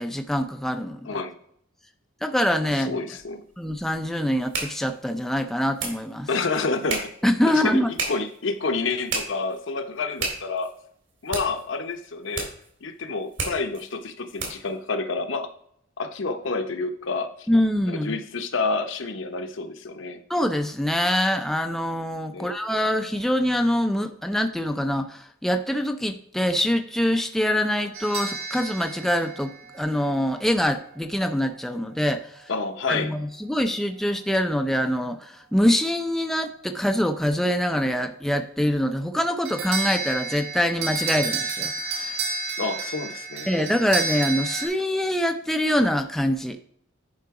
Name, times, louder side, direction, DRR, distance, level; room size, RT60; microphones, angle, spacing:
voice 1, 0.0-1.2 2.2-3.0 3.6-6.3 7.2-7.9 17.5-18.2 20.3-32.5 32.9-42.2 43.5-46.6, equal, ahead, 6 dB, 0.4 m, -24 dB
voice 2, 2.7-3.4 6.3-7.1 7.5-7.8 8.1-10.7 11.2-12.5 12.8-15.5 16.0-17.5 17.9-20.2 22.3-22.6 32.5-33.1 42.6-43.5, left 3 dB, 65° left, 8 dB, 0.8 m, -29 dB
sound 1, 3.2-14.8, right 3 dB, 60° right, 2.6 m, -35 dB
sound 2, 27.9-30.2 39.5-44.7, right 4 dB, 75° right, 1.5 m, -30 dB
10.5 x 3.8 x 4.8 m, 0.69 s
head